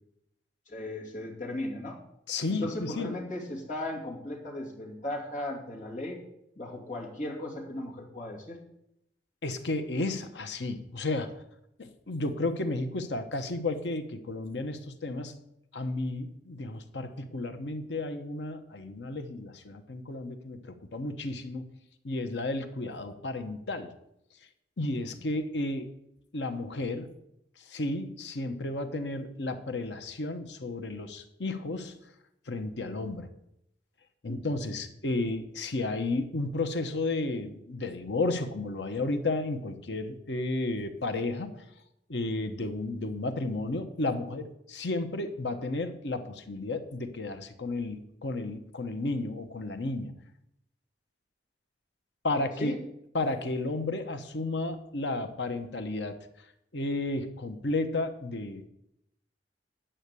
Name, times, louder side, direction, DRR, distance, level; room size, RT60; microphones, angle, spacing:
voice 1, 0.7-2.0 2.5-6.2 6.6-8.6 34.3-34.5 52.6-52.8, left 1 dB, 45° left, -3 dB, 2.6 m, -37 dB
voice 2, 2.3-3.1 9.4-11.3 11.8-15.3 15.7-21.7 22.0-23.9 24.8-25.9 26.3-27.1 27.7-31.9 32.5-33.3 34.2-41.6 42.1-50.1 52.2-52.7 53.1-56.2 56.7-58.7, left 2 dB, 80° left, 8 dB, 1.0 m, -32 dB
9.0 x 5.7 x 8.2 m, 0.81 s
head